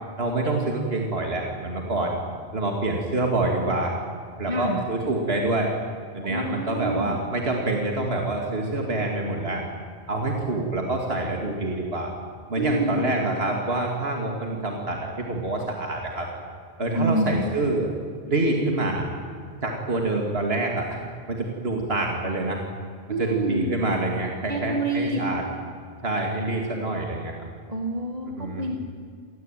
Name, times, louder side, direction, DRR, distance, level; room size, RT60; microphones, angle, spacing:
voice 1, 0.2-2.2 2.5-4.0 4.4-5.7 6.1-9.6 10.1-12.1 12.5-16.3 16.8-17.9 18.3-19.1 19.6-21.0 21.3-22.6 23.2-25.4 26.0-27.3 28.3-28.7, right 2 dB, 65° right, 1 dB, 3.0 m, -26 dB
voice 2, 4.5-4.8 6.2-7.1 12.6-13.1 16.9-17.4 23.1-23.6 24.5-25.2 27.7-28.8, right 1 dB, 35° right, 2 dB, 2.2 m, -27 dB
27.5 x 20.5 x 9.3 m, 2.2 s
omnidirectional pair, 1.1 m